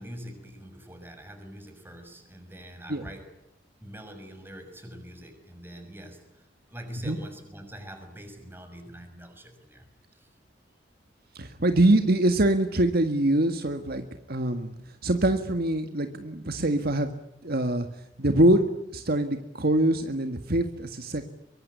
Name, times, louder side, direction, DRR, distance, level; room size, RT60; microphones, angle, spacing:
voice 1, 0.0-3.3 3.8-10.3, equal, 10° right, 5 dB, 6.4 m, -44 dB
voice 2, 11.4-14.7 15.0-17.1 17.4-17.9 18.2-18.6 18.9-21.3, right 1 dB, 55° right, 7 dB, 1.8 m, -24 dB
23.5 x 23.5 x 9.6 m, 0.80 s
head